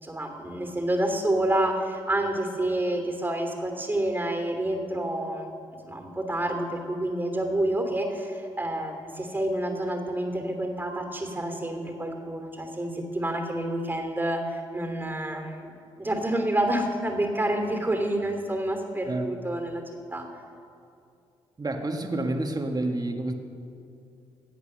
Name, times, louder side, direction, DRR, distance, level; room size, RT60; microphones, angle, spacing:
voice 1, 0.0-5.5 5.8-15.7 16.0-20.2, right 1 dB, 15° right, 4 dB, 2.9 m, -28 dB
voice 2, 21.6-23.3, right 2 dB, 30° right, 4 dB, 1.9 m, -29 dB
17.0 x 8.1 x 6.7 m, 2.5 s
hypercardioid pair, 50°, 12 cm